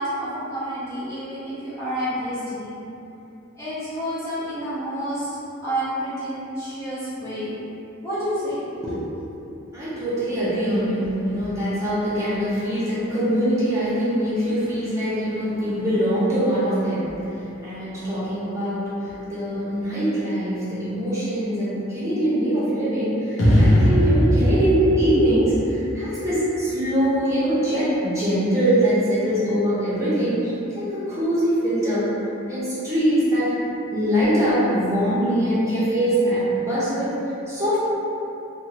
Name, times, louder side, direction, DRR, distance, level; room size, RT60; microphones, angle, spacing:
voice 1, 0.0-2.8 3.6-5.4 5.6-7.5 8.0-9.2, equal, 15° left, -13 dB, 0.5 m, -29 dB
voice 2, 9.7-32.1 32.5-33.5 33.9-37.8, equal, 15° right, -11 dB, 0.8 m, -23 dB
sound 1, 23.4-26.6, equal, 85° left, 0.6 m, -19 dB
2.9 x 2.2 x 2.7 m, 2.8 s
head